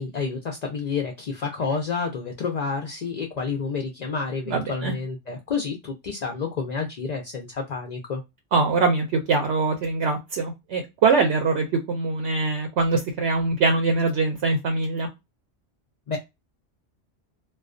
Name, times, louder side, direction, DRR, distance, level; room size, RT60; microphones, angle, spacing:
voice 1, 0.0-8.2 16.1-16.2, left 5 dB, 65° left, 0.4 m, -29 dB
voice 2, 4.5-4.9 8.5-15.1, right 3 dB, 70° right, 0.8 m, -23 dB
2.3 x 2.2 x 2.4 m
omnidirectional pair, 1.2 m